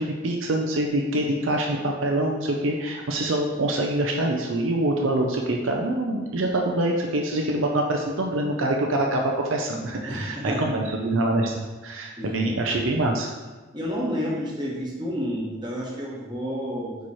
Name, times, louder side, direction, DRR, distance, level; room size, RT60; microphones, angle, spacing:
voice 1, 0.0-13.3, right 1 dB, 60° right, 1 dB, 0.6 m, -25 dB
voice 2, 10.1-10.7 12.2-12.6 13.7-17.0, equal, 20° right, -4 dB, 1.3 m, -30 dB
9.2 x 3.1 x 4.2 m, 1.3 s
head